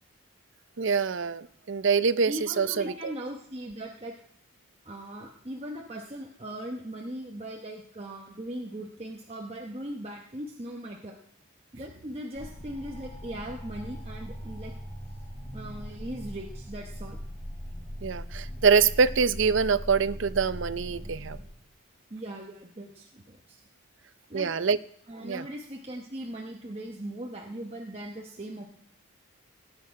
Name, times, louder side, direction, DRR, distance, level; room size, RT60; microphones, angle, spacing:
voice 1, 0.8-3.1 18.0-21.4 24.3-24.8 25.2-25.5, right 5 dB, 65° right, 15 dB, 0.5 m, -25 dB
voice 2, 2.3-4.1 4.8-11.2 11.7-14.7 15.5-17.2 22.1-23.6 24.3-24.5 25.1-28.7, right 1 dB, 30° right, 0 dB, 0.9 m, -39 dB
sound 1, 12.3-21.4, equal, 20° left, 5.0 m, -40 dB
18.5 x 8.6 x 4.8 m, 0.68 s
head